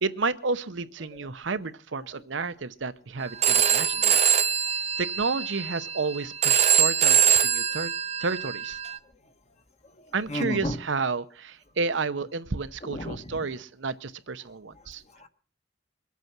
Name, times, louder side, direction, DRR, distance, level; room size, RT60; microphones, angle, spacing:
voice 1, 0.0-4.2 5.0-7.9 8.2-8.8 10.1-15.0, right 4 dB, 70° right, 12 dB, 0.8 m, -31 dB
Telephone, 3.4-9.0, right 8 dB, 35° right, 0.7 m, -23 dB
voice 2, 10.0-10.8 12.8-13.4 15.2-15.3, left 1 dB, 35° left, 8 dB, 1.3 m, -33 dB
22.5 x 8.3 x 5.9 m, 0.39 s
head